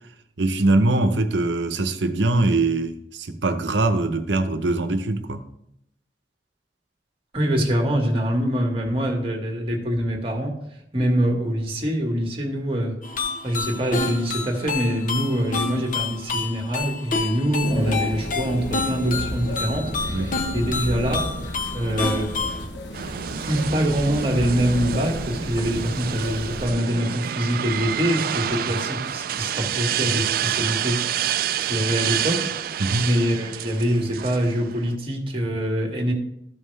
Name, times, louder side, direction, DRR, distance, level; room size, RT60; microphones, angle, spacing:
voice 1, 0.4-5.4 20.1-20.3 32.8-33.1, right 2 dB, 85° right, 9 dB, 0.8 m, -22 dB
voice 2, 7.3-10.5 10.9-12.9 13.4-21.3 21.7-22.4 23.4-36.1, equal, 30° right, 1 dB, 1.6 m, -24 dB
sound 1, 13.0-22.7, left 3 dB, 45° left, 0.9 m, -29 dB
sound 2, 17.6-26.7, left 1 dB, 70° left, 1.0 m, -32 dB
sound 3, 22.9-34.9, right 10 dB, 55° right, 0.3 m, -28 dB
13.5 x 5.5 x 3.3 m, 0.77 s
head